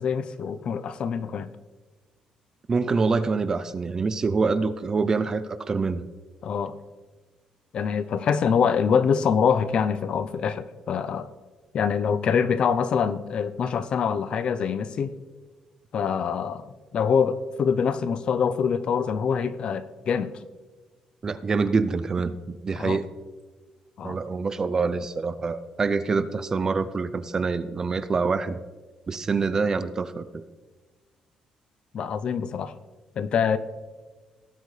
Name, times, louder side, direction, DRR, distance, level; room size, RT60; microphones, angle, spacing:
voice 1, 0.0-1.5 6.4-6.8 7.7-11.3 11.7-15.1 15.9-16.7 16.9-20.3 22.7-23.0 24.0-24.2 31.9-32.7 33.2-33.6, left 6 dB, 50° left, 13 dB, 0.6 m, -25 dB
voice 2, 2.7-6.1 21.2-23.0 24.0-28.6 29.1-30.4, right 4 dB, 25° right, 13 dB, 0.5 m, -26 dB
18.0 x 8.1 x 3.3 m, 1.3 s
cardioid pair, 140°, 2 cm